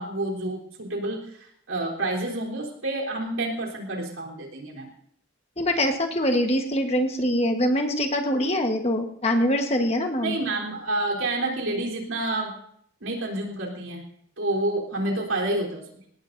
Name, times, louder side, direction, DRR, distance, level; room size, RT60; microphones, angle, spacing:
voice 1, 0.0-4.9 10.2-12.5 13.0-14.0 14.4-15.8, right 2 dB, 80° right, -1 dB, 3.5 m, -29 dB
voice 2, 5.6-10.3, equal, 30° left, 4 dB, 1.2 m, -24 dB
21.5 x 18.0 x 2.6 m, 0.68 s
head